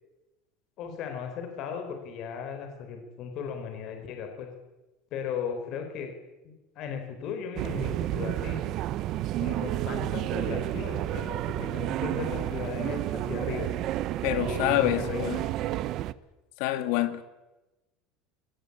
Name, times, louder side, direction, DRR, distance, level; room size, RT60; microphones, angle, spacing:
voice 1, 0.8-4.5 5.1-6.1 6.4-8.6 9.4-13.7 14.4-15.4, left 6 dB, 45° left, 5 dB, 4.4 m, -36 dB
sound 1, 7.6-16.1, right 14 dB, 40° right, 0.8 m, -31 dB
voice 2, 14.2-15.4 16.6-17.2, left 13 dB, 65° left, 11 dB, 2.3 m, -26 dB
22.5 x 19.0 x 8.6 m, 1.1 s
cardioid pair, 165°, 0 cm